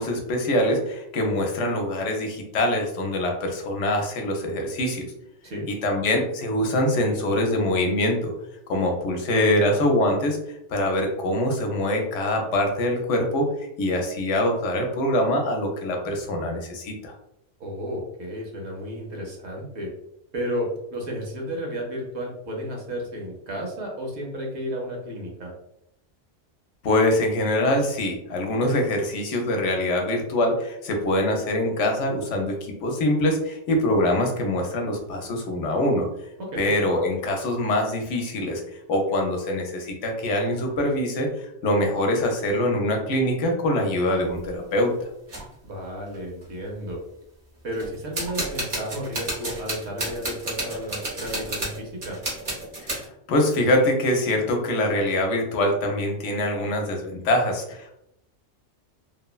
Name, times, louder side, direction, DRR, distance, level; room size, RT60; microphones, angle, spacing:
voice 1, 0.0-5.0 5.8-8.3 8.7-10.4 10.7-13.5 13.8-17.1 26.8-36.1 36.6-38.6 38.9-44.9 52.9-57.9, left 1 dB, 80° left, 2 dB, 0.9 m, -24 dB
voice 2, 17.6-19.9 20.3-25.5 36.5-36.7 45.6-47.0 47.6-52.2, equal, 70° right, -1 dB, 1.0 m, -32 dB
sound 1, 44.1-44.5 45.3-45.5 46.1-46.2 46.4-46.9 47.7-53.1, right 1 dB, 40° right, 0.8 m, -32 dB
2.9 x 2.1 x 2.2 m, 0.78 s
omnidirectional pair, 1.2 m